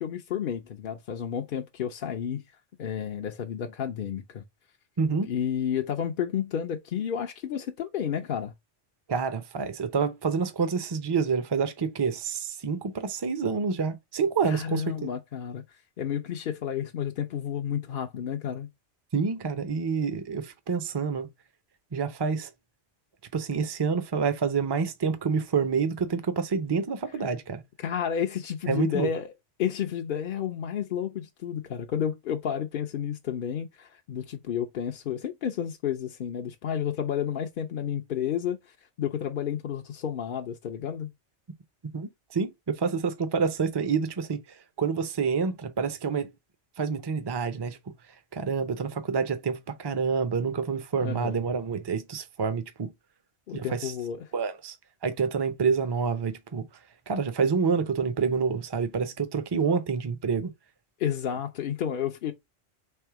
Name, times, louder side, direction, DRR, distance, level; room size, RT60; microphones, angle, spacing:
voice 1, 0.0-2.4 2.8-4.4 5.3-8.5 14.4-15.6 16.0-18.7 27.8-29.3 29.6-41.1 51.0-51.4 53.5-54.3 61.0-62.3, left 9 dB, 60° left, 0.6 m, -31 dB
voice 2, 5.0-5.3 9.1-15.1 19.1-21.3 21.9-22.5 23.3-27.6 28.7-29.1 41.9-44.4 44.8-46.3 46.8-47.8 48.3-52.9 53.5-53.9 54.3-54.8 55.0-56.7 57.1-60.5, right 5 dB, 30° right, 0.5 m, -28 dB
3.5 x 3.3 x 4.6 m
omnidirectional pair, 1.2 m